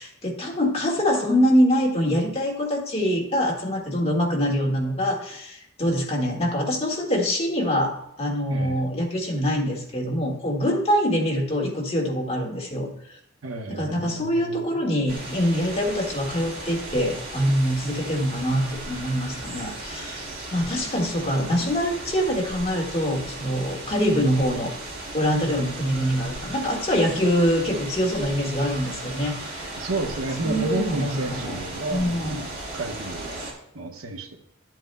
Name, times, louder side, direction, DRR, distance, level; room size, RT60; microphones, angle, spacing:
voice 1, 0.0-12.9 13.7-24.7 25.1-29.7 30.4-31.6 31.9-32.4, equal, 30° left, -1 dB, 1.7 m, -24 dB
voice 2, 8.5-8.8 13.4-14.8 29.8-33.4 33.7-34.4, right 2 dB, 85° right, 4 dB, 1.0 m, -31 dB
sound 1, 15.1-33.5, right 2 dB, 50° right, 2.9 m, -36 dB
12.0 x 7.6 x 2.2 m, 0.78 s
head